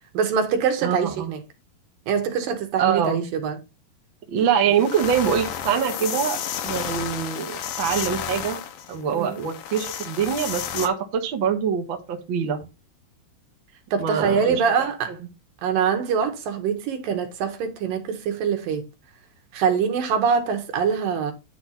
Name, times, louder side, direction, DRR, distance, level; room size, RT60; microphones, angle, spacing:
voice 1, 0.1-1.4 2.1-3.6 9.1-9.4 13.9-15.1 15.6-18.8 19.5-21.3, right 6 dB, 70° right, 3.1 m, -24 dB
voice 2, 0.8-1.3 2.8-3.3 4.3-6.4 6.6-8.6 8.9-12.7 14.0-14.6, right 7 dB, 50° right, 1.5 m, -24 dB
sound 1, 4.4-4.5 4.7-10.9, left 9 dB, 65° left, 2.3 m, -32 dB
10.0 x 3.5 x 5.8 m
omnidirectional pair, 4.2 m